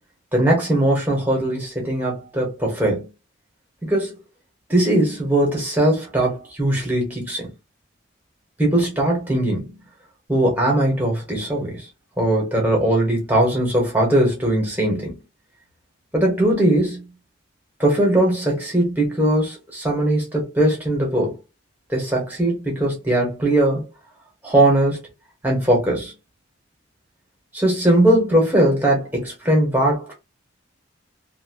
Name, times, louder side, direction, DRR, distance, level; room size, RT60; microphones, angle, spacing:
voice 1, 0.3-3.1 3.8-4.2 4.7-7.5 8.6-9.7 10.3-11.8 12.2-15.1 16.1-17.0 17.8-21.3 21.9-23.8 24.4-25.0 25.4-26.1 27.5-30.1, right 1 dB, 10° right, 1.1 m, -20 dB
2.8 x 2.3 x 2.8 m
head